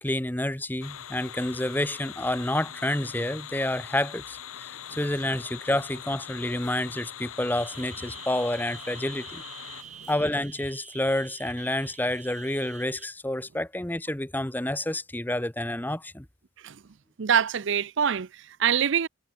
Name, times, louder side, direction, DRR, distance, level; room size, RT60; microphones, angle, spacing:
voice 1, 0.0-9.4 10.1-16.3, left 1 dB, 10° left, 0.9 m, -29 dB
sound 1, 0.8-9.8, left 10 dB, 80° left, 1.0 m, -42 dB
sound 2, 4.5-10.4, left 2 dB, 55° left, 5.8 m, -59 dB
sound 3, 7.6-13.0, right 8 dB, 35° right, 3.6 m, -46 dB
voice 2, 17.2-19.1, right 8 dB, 60° right, 0.5 m, -25 dB
head